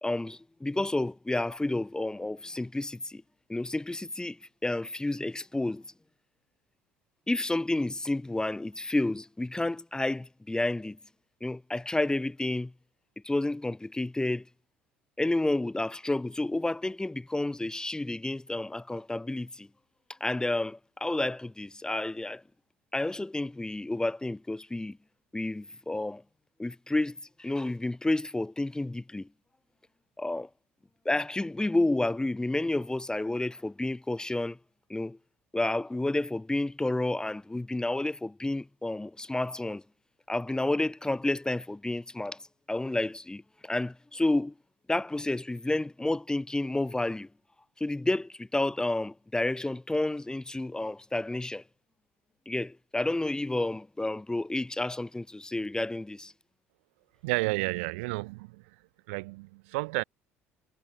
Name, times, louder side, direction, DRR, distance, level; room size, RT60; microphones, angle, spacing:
voice 1, 0.0-3.2 3.5-5.8 7.3-11.0 11.4-12.7 13.2-14.4 15.2-19.7 20.2-22.4 22.9-25.0 25.3-26.2 26.6-29.3 30.2-30.5 31.0-34.6 34.9-35.2 35.5-39.8 40.3-42.4 42.7-44.5 44.9-47.3 47.8-51.6 52.5-56.3, left 2 dB, 10° left, 2.4 m, -30 dB
voice 2, 57.2-58.7 59.1-60.0, right 26 dB, 70° right, 3.7 m, -31 dB
figure-of-eight pair, 60°, 7 cm